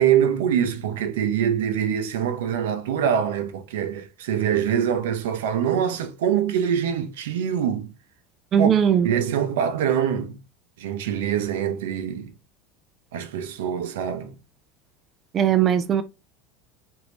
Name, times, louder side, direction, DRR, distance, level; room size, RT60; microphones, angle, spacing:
voice 1, 0.0-7.9 8.6-8.7 9.0-10.4 10.8-12.3 13.1-14.4, right 9 dB, 90° right, 0.5 m, -24 dB
voice 2, 8.5-9.1 15.3-16.0, right 9 dB, 35° right, 0.4 m, -19 dB
3.1 x 2.6 x 3.1 m
supercardioid pair, 120°, 0 cm